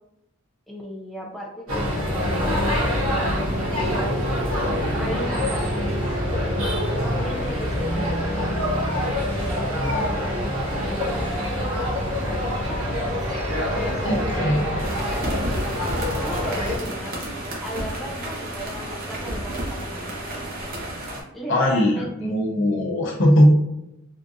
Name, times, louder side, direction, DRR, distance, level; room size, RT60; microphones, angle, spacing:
voice 1, 0.7-4.3 5.0-6.0 7.0-8.3 9.1-12.8 13.7-15.2 16.1-17.2 17.6-20.1 21.3-22.3, right 1 dB, ahead, -3 dB, 0.4 m, -36 dB
sound 1, 1.7-16.8, equal, 90° right, 1.2 m, -25 dB
sound 2, 2.1-20.9, right 1 dB, 65° right, 1.0 m, -39 dB
voice 2, 14.0-14.7 21.5-23.5, equal, 65° left, -1 dB, 0.7 m, -19 dB
sound 3, 14.8-21.2, right 1 dB, 45° right, 0.8 m, -32 dB
3.6 x 2.4 x 2.6 m, 0.86 s
head